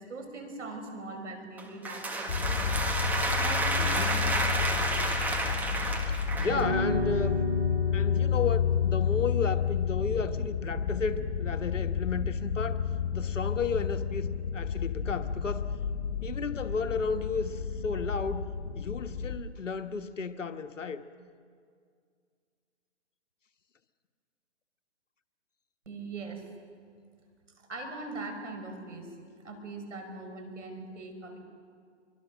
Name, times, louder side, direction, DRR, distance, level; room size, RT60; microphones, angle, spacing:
voice 1, 0.0-5.0 25.9-26.4 27.6-29.1 29.4-31.4, right 3 dB, 80° right, 5 dB, 5.4 m, -41 dB
sound 1, 1.6-6.7, right 2 dB, 5° right, 1.4 m, -30 dB
sound 2, 2.3-19.4, left 7 dB, 65° left, 6.4 m, -31 dB
voice 2, 3.8-4.2 6.1-7.4 7.9-12.8 13.1-15.7 16.2-21.0, left 5 dB, 85° left, 9 dB, 1.4 m, -33 dB
sound 3, 6.5-15.0, equal, 45° right, 6.2 m, -38 dB
25.5 x 23.5 x 6.4 m, 2.1 s
hypercardioid pair, 145°, 36 cm